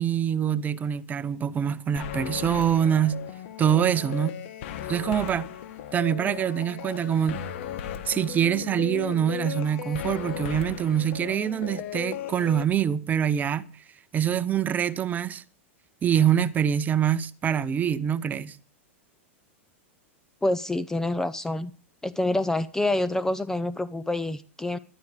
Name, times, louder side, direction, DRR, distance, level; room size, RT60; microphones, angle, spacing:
voice 1, 0.0-3.2 3.6-4.4 4.9-5.4 5.9-7.5 8.1-13.7 14.1-15.4 16.0-18.6, right 9 dB, 25° right, 1.0 m, -25 dB
sound 1, 2.0-12.6, left 11 dB, 65° left, 2.0 m, -36 dB
voice 2, 20.4-21.7 22.0-24.8, left 2 dB, 5° left, 0.7 m, -27 dB
15.0 x 12.5 x 5.1 m
hypercardioid pair, 115°, 7 cm